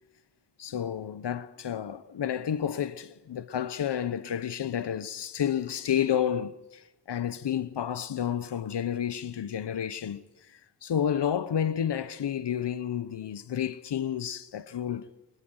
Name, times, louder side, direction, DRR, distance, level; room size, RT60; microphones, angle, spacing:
voice 1, 0.6-15.1, left 9 dB, 85° left, 0.9 m, -31 dB
24.0 x 22.0 x 7.9 m
wide cardioid pair, 80°, 40 cm